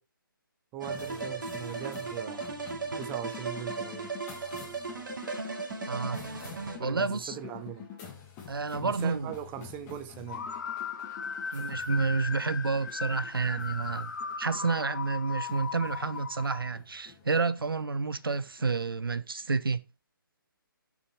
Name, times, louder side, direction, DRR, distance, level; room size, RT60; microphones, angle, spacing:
voice 1, 0.7-2.4 3.0-4.1 6.7-7.9 8.8-10.5, right 11 dB, 15° right, 0.7 m, -40 dB
sound 1, 0.8-19.4, left 7 dB, 20° left, 2.0 m, -48 dB
sound 2, 0.8-6.8, right 4 dB, 60° right, 2.3 m, -37 dB
voice 2, 5.9-6.2 6.8-7.4 8.5-9.3 11.5-14.1 14.4-19.8, right 4 dB, 80° right, 0.7 m, -30 dB
sound 3, 10.3-16.7, left 5 dB, 55° left, 1.1 m, -37 dB
6.7 x 6.3 x 4.5 m
figure-of-eight pair, 145°, 12 cm